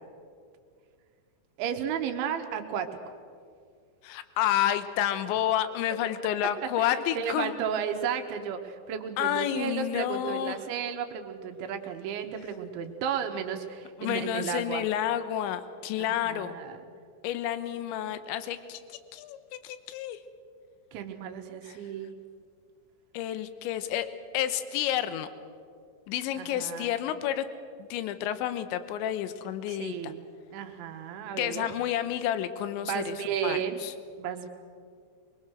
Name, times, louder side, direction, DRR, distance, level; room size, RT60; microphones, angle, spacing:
voice 1, 1.6-2.9 6.8-14.9 16.0-16.8 20.9-22.1 26.4-27.0 29.7-30.2 30.5-31.7 32.8-33.8 34.2-34.5, right 8 dB, 75° right, 6 dB, 3.4 m, -33 dB
voice 2, 4.0-7.5 9.2-10.6 14.0-16.6 17.2-20.2 21.6-21.8 23.1-24.1 24.3-25.3 26.1-27.5 27.8-30.1 31.4-33.9, left 11 dB, 80° left, 11 dB, 3.1 m, -30 dB
23.5 x 22.5 x 6.4 m, 2.2 s
omnidirectional pair, 5.5 m